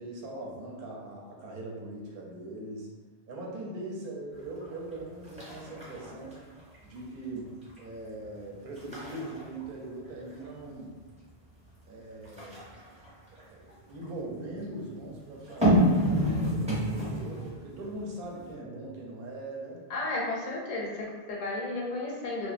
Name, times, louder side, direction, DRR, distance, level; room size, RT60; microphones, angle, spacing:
voice 1, 0.0-2.9 3.3-6.4 6.8-11.0 11.9-12.6 13.3-19.8, right 1 dB, 65° right, -2 dB, 0.7 m, -41 dB
sound 1, 4.6-4.9 5.2-7.0 7.4-7.8 8.3-8.4 8.8-10.6 12.2-14.1 15.4-17.6 18.0-18.1, equal, 10° right, 0.5 m, -28 dB
voice 2, 19.9-22.5, left 2 dB, 55° left, -2 dB, 0.6 m, -33 dB
2.7 x 2.1 x 2.4 m, 1.3 s
omnidirectional pair, 1.0 m